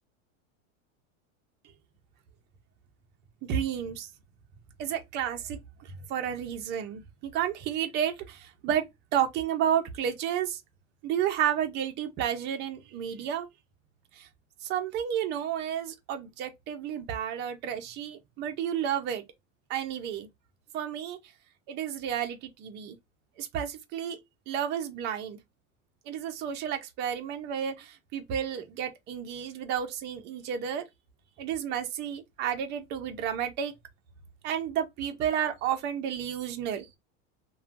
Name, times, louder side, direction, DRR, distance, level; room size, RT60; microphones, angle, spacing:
voice 1, 3.4-4.1 4.8-8.8 9.1-10.6 11.0-13.5 14.1-14.3 14.6-19.2 19.7-20.3 20.7-21.2 21.7-23.0 23.4-24.2 24.5-25.4 26.1-30.8 31.4-33.7 34.4-36.9, right 9 dB, 30° right, 0.5 m, -31 dB
3.0 x 2.2 x 2.5 m
supercardioid pair, 155°, 39 cm